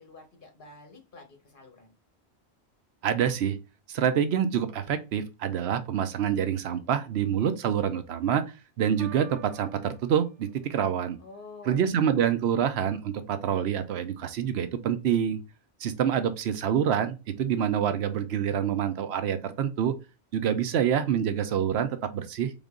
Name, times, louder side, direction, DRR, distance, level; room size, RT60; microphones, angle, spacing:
voice 1, 0.0-1.9 11.2-11.8, left 3 dB, 55° left, 1.5 m, -48 dB
voice 2, 3.0-3.6 3.9-8.4 8.8-11.2 11.7-15.4 15.8-20.0 20.3-22.5, right 8 dB, 80° right, 0.9 m, -26 dB
Piano, 9.0-11.0, right 3 dB, 20° right, 1.8 m, -49 dB
4.0 x 3.6 x 3.7 m
omnidirectional pair, 1.1 m